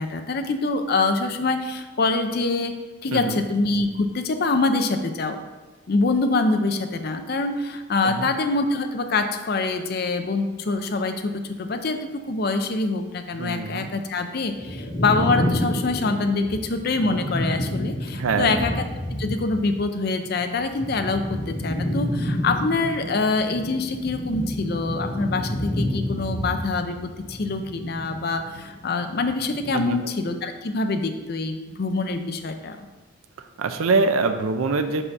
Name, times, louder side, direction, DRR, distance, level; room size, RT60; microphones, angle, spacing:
voice 1, 0.0-2.7 3.0-5.4 5.9-18.8 19.2-32.8, left 3 dB, 50° left, 6 dB, 0.5 m, -25 dB
voice 2, 3.1-3.4 8.0-8.3 13.4-13.9 18.1-18.6 29.7-30.0 33.6-35.0, right 3 dB, 90° right, 8 dB, 0.5 m, -24 dB
sound 1, 14.6-19.9 20.1-28.7 29.1-29.7, left 1 dB, 70° left, 1.7 m, -29 dB
5.5 x 4.1 x 5.8 m, 1.2 s
head